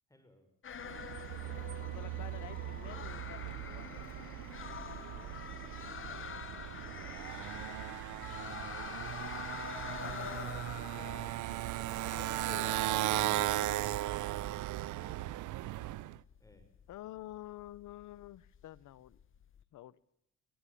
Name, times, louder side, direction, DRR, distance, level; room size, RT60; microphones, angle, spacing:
voice 1, 0.1-0.5 4.6-6.4 6.9-8.1 9.3-10.3 16.4-16.7, left 1 dB, 10° left, 7 dB, 5.8 m, -65 dB
sound 1, 0.6-19.6, left 8 dB, 40° left, 1.0 m, -47 dB
Motorcycle, 0.8-16.2, right 16 dB, 80° right, 0.7 m, -37 dB
voice 2, 1.7-4.0 6.1-6.4 9.9-14.6 16.9-19.2 19.7-20.0, left 14 dB, 75° left, 21 dB, 1.0 m, -50 dB
22.0 x 15.0 x 8.5 m, 0.78 s
cardioid pair, 90°, 30 cm